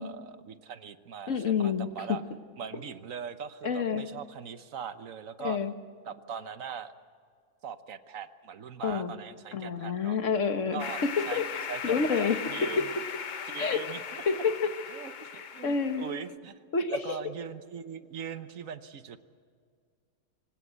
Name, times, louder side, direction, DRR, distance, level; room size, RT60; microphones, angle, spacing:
voice 1, 0.0-2.2 2.6-5.6 6.0-6.9 7.6-10.2 10.7-11.4 11.7-12.9 13.5-14.2 14.9-16.6 16.9-19.2, right 7 dB, 70° right, 11 dB, 1.4 m, -41 dB
voice 2, 1.3-2.2 3.6-4.0 5.4-5.7 8.8-9.1 9.5-10.8 11.2-11.5 11.8-12.8 13.6-13.8 14.3-14.7 15.6-16.1 16.7-17.2, left 5 dB, 60° left, 8 dB, 1.7 m, -28 dB
sound 1, 10.8-16.3, left 6 dB, 45° left, 0.7 m, -38 dB
24.5 x 17.5 x 8.2 m, 2.1 s
omnidirectional pair, 1.5 m